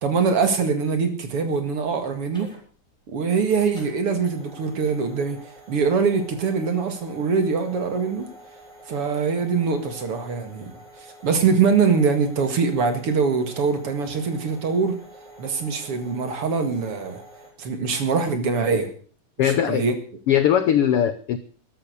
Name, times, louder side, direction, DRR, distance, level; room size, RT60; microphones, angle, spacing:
voice 1, 0.0-2.5 3.1-5.4 5.7-8.3 8.9-10.7 11.2-15.0 15.4-17.2 17.6-18.9 19.4-19.9, right 5 dB, 50° right, 8 dB, 2.6 m, -23 dB
sound 1, 1.3-17.5, right 1 dB, ahead, 7.1 m, -47 dB
voice 2, 19.4-19.8 20.3-21.4, left 9 dB, 85° left, 12 dB, 1.2 m, -20 dB
14.0 x 12.0 x 6.8 m, 0.43 s
omnidirectional pair, 3.8 m